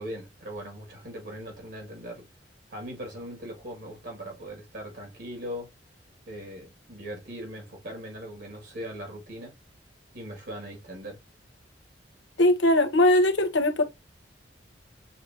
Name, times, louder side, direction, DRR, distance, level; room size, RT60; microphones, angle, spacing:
voice 1, 0.0-2.3 2.7-5.7 6.3-9.5 10.1-11.2, equal, 60° right, 2.1 m, -39 dB
voice 2, 12.4-13.8, left 1 dB, 75° left, 1.1 m, -20 dB
6.5 x 2.9 x 2.7 m
head